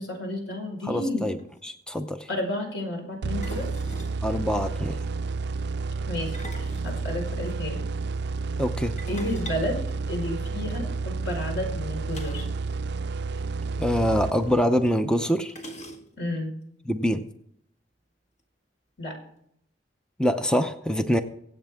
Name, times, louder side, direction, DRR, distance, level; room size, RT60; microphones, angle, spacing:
voice 1, 0.0-1.3 2.3-3.7 6.1-7.8 9.0-9.8 10.1-12.4 16.2-16.5 19.0-19.1, left 1 dB, 85° left, 1 dB, 4.9 m, -31 dB
voice 2, 0.8-1.4 1.6-2.3 4.2-5.0 8.6-9.0 13.8-15.5 16.9-17.3 20.2-21.2, equal, 5° left, 8 dB, 0.6 m, -25 dB
sound 1, 1.1-1.2 1.4-1.6 3.4-4.2 6.1-7.6 9.0-10.6 12.1-12.6 12.9-13.0 13.3-13.5 14.5-14.6 15.5-16.3, equal, 40° left, 1.8 m, -43 dB
sound 2, 3.2-14.9, right 4 dB, 60° right, 0.4 m, -31 dB
24.0 x 8.3 x 3.6 m, 0.71 s
head